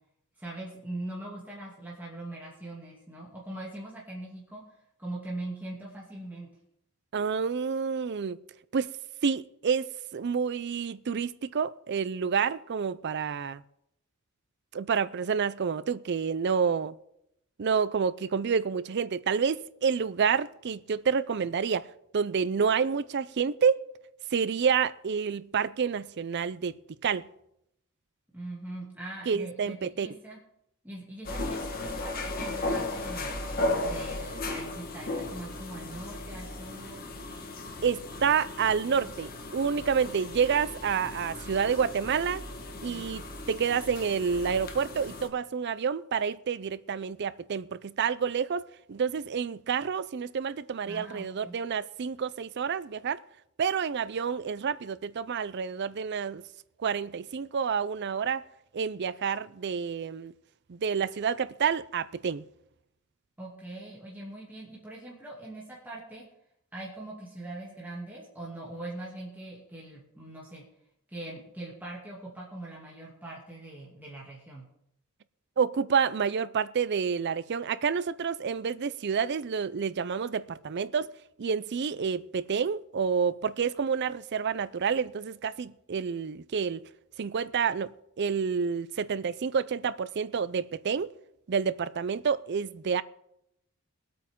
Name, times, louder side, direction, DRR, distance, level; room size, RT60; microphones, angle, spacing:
voice 1, 0.4-6.5 28.3-30.4 30.8-33.3 33.8-37.0 42.9-43.0 50.8-51.5 63.4-66.2 66.7-70.6 71.1-74.7, right 1 dB, 10° right, 2.6 m, -42 dB
voice 2, 7.1-8.4 8.7-8.9 9.2-9.8 10.1-13.6 14.7-17.0 17.6-23.8 24.3-27.3 29.3-30.1 37.8-42.4 42.8-53.2 53.6-56.4 56.8-58.4 58.7-60.3 60.7-62.4 75.6-81.1 81.4-86.9 87.2-91.1 91.5-93.0, right 6 dB, 50° right, 0.4 m, -29 dB
sound 1, 31.2-45.3, left 2 dB, 40° left, 1.6 m, -36 dB
21.5 x 8.6 x 3.7 m
head